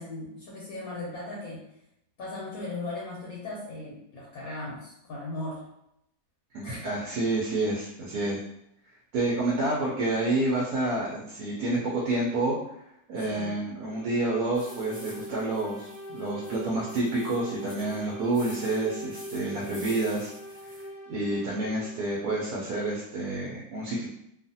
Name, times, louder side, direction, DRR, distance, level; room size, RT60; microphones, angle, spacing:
voice 1, 0.0-1.6 2.2-5.7 6.6-6.9 13.3-13.6, left 2 dB, 65° left, -4 dB, 1.0 m, -37 dB
voice 2, 6.5-8.4 9.1-12.6 13.1-20.3 21.1-24.1, right 2 dB, 70° right, -4 dB, 1.0 m, -29 dB
sound 1, 13.7-22.1, equal, 20° right, 0.3 m, -43 dB
sound 2, 14.5-20.9, equal, 35° left, 0.6 m, -49 dB
2.6 x 2.4 x 2.6 m, 0.79 s
omnidirectional pair, 1.9 m